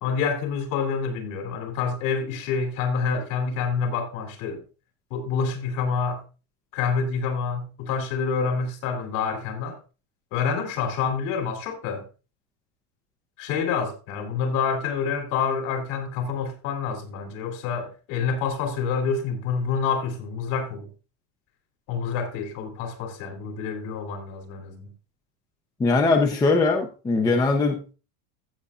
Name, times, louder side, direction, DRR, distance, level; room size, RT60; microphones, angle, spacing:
voice 1, 0.0-4.6 5.1-6.2 6.7-9.8 10.3-12.1 13.4-20.9 21.9-24.9, left 5 dB, 55° left, 3.2 m, -27 dB
voice 2, 25.8-27.9, left 3 dB, 10° left, 0.6 m, -21 dB
15.5 x 6.8 x 2.4 m
cardioid pair, 175°, 46 cm